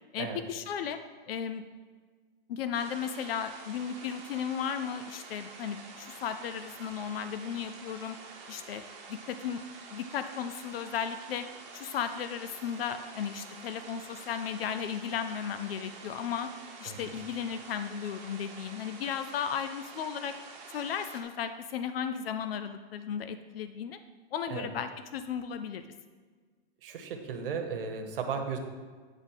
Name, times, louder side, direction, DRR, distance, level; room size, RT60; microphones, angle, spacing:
voice 1, 0.1-1.0 1.3-1.6 2.5-8.2 8.5-8.8 9.1-9.6 9.9-11.5 11.7-16.5 16.8-20.3 20.7-24.0 24.3-25.9, left 8 dB, 70° left, 10 dB, 0.5 m, -35 dB
sound 1, 2.7-21.2, right 4 dB, 30° right, 0.9 m, -48 dB
voice 2, 26.8-28.6, right 6 dB, 60° right, 5 dB, 1.1 m, -35 dB
9.0 x 3.7 x 5.6 m, 1.5 s
supercardioid pair, 180°, 31 cm